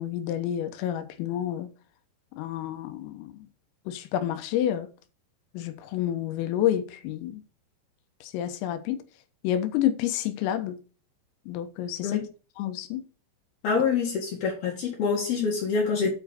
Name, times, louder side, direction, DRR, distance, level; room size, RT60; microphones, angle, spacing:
voice 1, 0.0-1.7 2.3-3.3 3.9-4.9 5.6-7.4 8.2-9.0 9.4-10.8 11.5-12.2 12.6-13.0, left 11 dB, 85° left, 3.6 m, -29 dB
voice 2, 13.6-16.1, left 5 dB, 60° left, 3.0 m, -26 dB
9.0 x 4.8 x 6.9 m
omnidirectional pair, 5.9 m